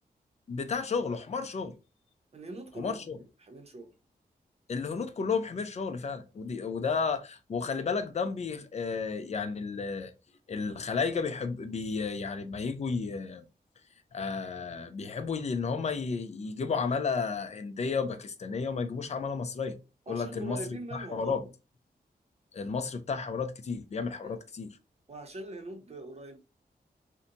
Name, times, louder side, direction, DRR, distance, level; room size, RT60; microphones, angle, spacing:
voice 1, 0.5-1.8 2.8-3.2 4.7-10.1 10.5-13.4 14.1-19.8 20.1-21.5 22.5-24.8, left 5 dB, 45° left, 0.4 m, -32 dB
voice 2, 2.3-3.9 20.1-21.4 24.2-24.4 25.1-26.4, right 2 dB, 40° right, 0.7 m, -43 dB
2.7 x 2.2 x 2.6 m
wide cardioid pair, 105°, 16 cm